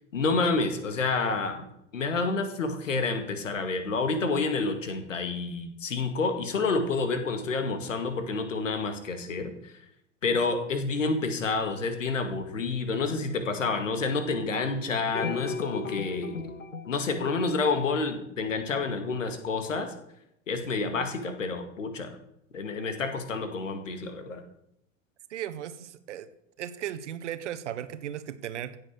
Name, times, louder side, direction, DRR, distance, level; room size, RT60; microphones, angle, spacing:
voice 1, 0.1-1.6 1.9-9.7 10.2-16.5 16.9-19.9 20.5-22.2 22.5-24.4, left 4 dB, 70° left, 7 dB, 2.1 m, -29 dB
sound 1, 15.1-18.3, left 5 dB, 90° left, 0.8 m, -37 dB
voice 2, 25.3-26.3 26.6-28.8, right 10 dB, 60° right, 12 dB, 1.3 m, -36 dB
16.0 x 7.6 x 6.4 m, 0.77 s
figure-of-eight pair, 80°, 39 cm